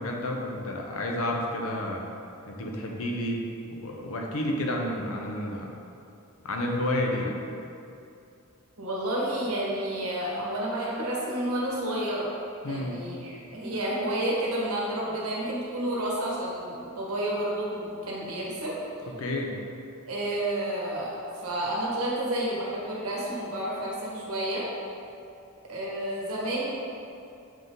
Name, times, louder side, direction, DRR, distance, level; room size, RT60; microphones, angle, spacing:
voice 1, 0.0-2.1 2.5-3.4 3.7-5.7 6.4-7.3 12.6-13.0 19.2-19.5, left 1 dB, 70° left, 1 dB, 0.8 m, -30 dB
voice 2, 8.8-12.3 12.6-18.8 20.1-24.6 25.7-26.7, right 1 dB, 80° right, -5 dB, 1.5 m, -30 dB
7.3 x 3.9 x 3.9 m, 2.6 s
head